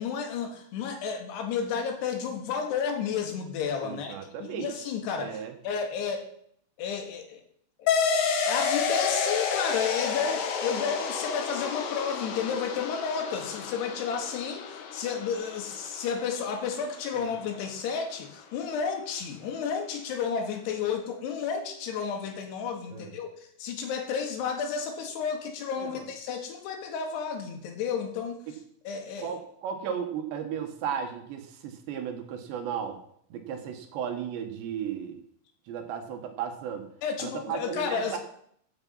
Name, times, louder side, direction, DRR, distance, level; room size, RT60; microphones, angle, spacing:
voice 1, 0.0-6.3 6.8-7.4 7.8-7.9 8.4-28.4 28.8-29.4 37.0-38.2, left 6 dB, 65° left, 4 dB, 3.4 m, -32 dB
voice 2, 3.8-4.7 5.2-5.5 22.9-23.1 25.8-26.0 29.2-33.0 33.3-35.2 35.7-36.9 37.2-38.2, right 8 dB, 70° right, 5 dB, 3.4 m, -35 dB
sound 1, 7.9-16.9, left 6 dB, 80° left, 4.0 m, -30 dB
14.5 x 8.4 x 5.6 m, 0.67 s
omnidirectional pair, 5.6 m